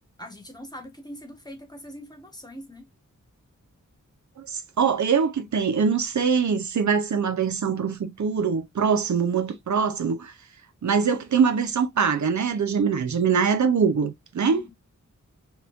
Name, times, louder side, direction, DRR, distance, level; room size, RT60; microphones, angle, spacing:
voice 1, 0.2-2.8 14.4-14.7, left 1 dB, 15° left, 1.3 m, -42 dB
voice 2, 4.4-10.3 10.8-14.6, right 6 dB, 70° right, 0.6 m, -23 dB
5.2 x 3.0 x 2.5 m
wide cardioid pair, 100°, 31 cm